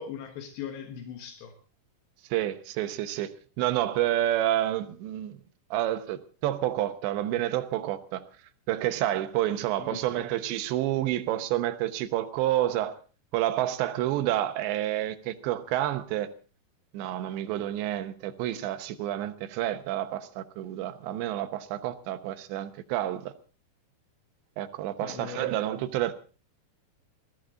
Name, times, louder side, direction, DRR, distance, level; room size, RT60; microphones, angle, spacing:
voice 1, 0.0-1.5 9.8-10.2 25.0-25.5, left 8 dB, 80° left, 3.7 m, -40 dB
voice 2, 2.3-5.4 5.7-8.2 8.7-13.0 13.3-16.3 16.9-23.3 24.6-26.1, right 13 dB, 90° right, 3.3 m, -29 dB
20.5 x 15.0 x 3.8 m
omnidirectional pair, 4.9 m